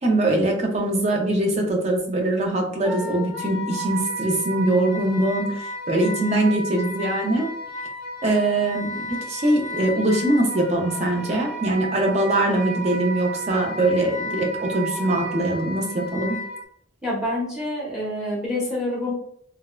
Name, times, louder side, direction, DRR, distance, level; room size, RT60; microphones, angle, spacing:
voice 1, 0.0-7.5 8.2-16.4, right 1 dB, 35° right, 1 dB, 0.5 m, -22 dB
Wind instrument woodwind instrument, 2.8-16.6, equal, 75° right, 1.0 m, -33 dB
voice 2, 17.0-19.1, left 1 dB, 5° right, -5 dB, 0.8 m, -27 dB
3.3 x 2.1 x 2.3 m, 0.66 s
head